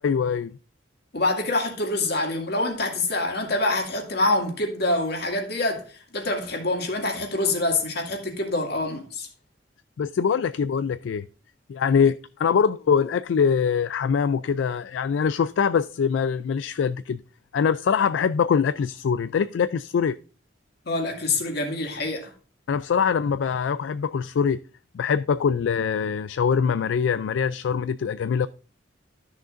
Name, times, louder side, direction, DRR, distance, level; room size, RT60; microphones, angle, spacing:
voice 1, 0.0-0.5 10.0-11.2 11.7-17.2 17.5-20.2 22.7-24.6 24.9-28.5, left 6 dB, 80° left, 0.3 m, -23 dB
voice 2, 1.1-5.9 6.1-9.3 20.9-22.3, left 2 dB, 60° left, 2.2 m, -26 dB
13.0 x 6.5 x 2.5 m
head